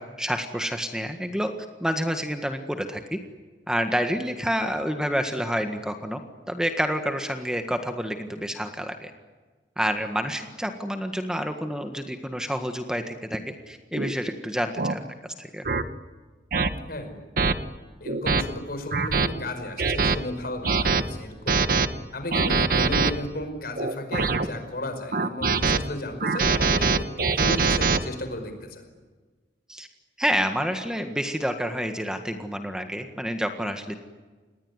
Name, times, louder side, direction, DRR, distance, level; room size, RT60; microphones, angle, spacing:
voice 1, 0.0-1.5 1.8-3.2 3.7-6.2 6.5-9.1 9.8-15.6 29.7-29.9 30.2-34.0, equal, 5° right, 6 dB, 1.6 m, -28 dB
sound 1, 14.0-14.1 14.8-15.0 15.7-15.8 16.5-16.7 17.4-17.5 18.1-18.4 18.9-19.3 19.8-20.2 20.6-21.0 21.5-21.9 22.3-23.1 23.8-24.5 25.1-25.8 26.2-28.0, right 4 dB, 55° right, 1.4 m, -23 dB
voice 2, 16.9-17.2 18.0-21.6 22.1-28.8, left 1 dB, 55° left, 7 dB, 5.2 m, -34 dB
28.0 x 20.5 x 9.7 m, 1.3 s
head